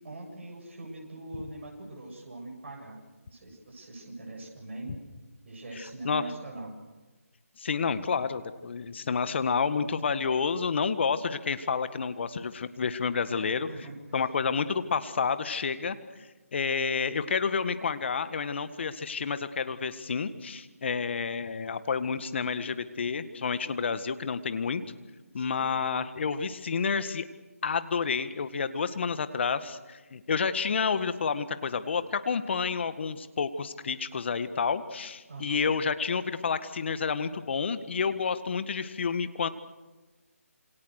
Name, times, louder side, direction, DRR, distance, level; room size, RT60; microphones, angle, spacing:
voice 1, 0.0-3.0 3.3-5.0 5.5-6.7 13.3-14.2 25.3-25.7 35.3-35.6, right 2 dB, 50° right, -1 dB, 7.8 m, -42 dB
voice 2, 5.8-6.3 7.6-13.7 14.1-16.0 16.5-24.8 25.3-27.3 27.6-39.5, left 5 dB, 50° left, 12 dB, 1.8 m, -29 dB
27.5 x 27.0 x 6.6 m, 1.2 s
figure-of-eight pair, 155°, 8 cm